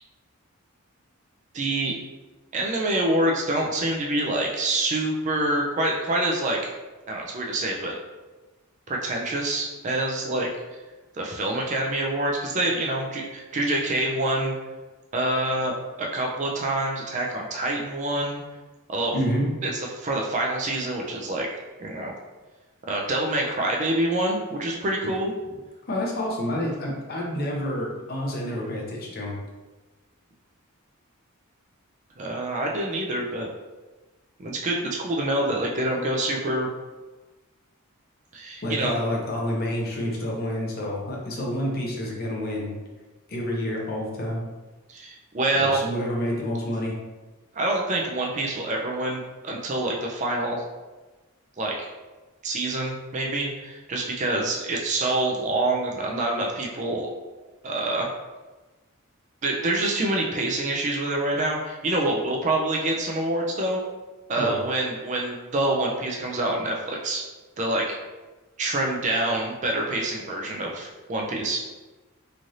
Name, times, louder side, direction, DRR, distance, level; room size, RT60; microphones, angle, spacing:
voice 1, 1.5-2.0 2.5-6.7 7.1-7.9 8.9-10.5 11.1-14.5 15.1-18.4 18.9-19.1 19.6-22.1 22.9-25.3 32.2-33.5 34.4-36.7 38.3-39.0 44.9-45.8 47.5-50.6 51.6-51.9 52.4-57.1 57.6-58.1 59.4-63.8 64.3-67.2 67.6-68.0 68.6-71.6, right 1 dB, 35° right, 0 dB, 0.3 m, -26 dB
voice 2, 19.1-19.5 25.9-29.4 38.6-42.8 43.3-44.4 45.6-46.9 64.4-64.6, left 1 dB, 45° left, -1 dB, 0.6 m, -28 dB
3.1 x 2.5 x 2.6 m, 1.2 s
head